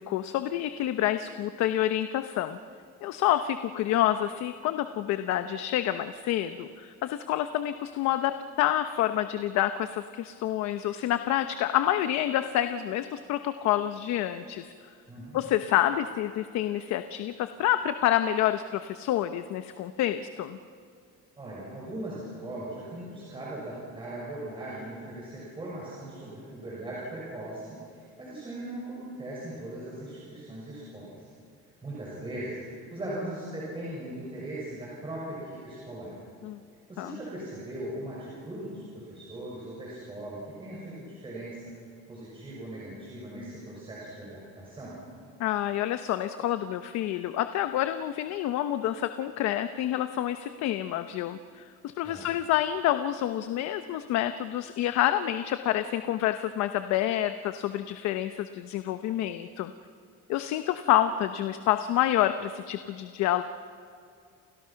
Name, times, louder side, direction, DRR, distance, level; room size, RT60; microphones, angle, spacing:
voice 1, 0.0-2.6 3.0-14.7 15.3-20.6 36.4-36.6 37.0-37.2 45.4-59.7 60.3-63.4, left 12 dB, 65° left, 9 dB, 1.0 m, -28 dB
voice 2, 15.1-15.4 21.4-31.3 31.8-36.2 36.9-41.7 42.1-45.0 52.0-52.3, right 1 dB, 20° right, -6 dB, 6.6 m, -39 dB
30.0 x 29.5 x 5.9 m, 2.3 s
cardioid pair, 165°, 29 cm